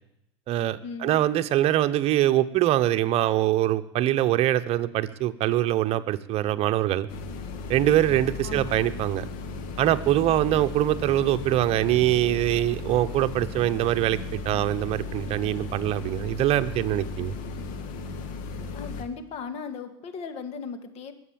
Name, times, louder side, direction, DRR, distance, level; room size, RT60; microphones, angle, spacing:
voice 1, 0.5-7.1 7.7-9.2 9.8-17.4, right 13 dB, 45° right, 10 dB, 1.0 m, -23 dB
sound 1, 7.1-19.0, left 3 dB, 65° left, 2.3 m, -36 dB
voice 2, 18.7-21.1, left 5 dB, 50° left, 8 dB, 2.3 m, -37 dB
22.0 x 8.0 x 7.6 m, 0.81 s
supercardioid pair, 110°, 14 cm